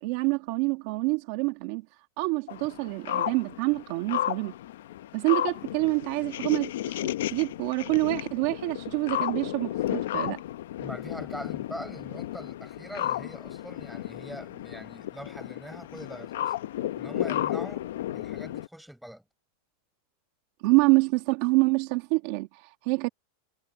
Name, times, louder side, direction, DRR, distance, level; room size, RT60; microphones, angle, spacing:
voice 1, 0.0-1.8 2.2-4.5 5.1-6.7 7.0-10.4 20.6-23.1, right 25 dB, 45° right, 1.5 m, -26 dB
sound 1, 2.5-18.7, left 12 dB, 70° left, 0.7 m, -33 dB
voice 2, 10.8-16.5 17.0-17.9 18.1-19.2, equal, ahead, 5.6 m, -42 dB
supercardioid pair, 180°, 0 cm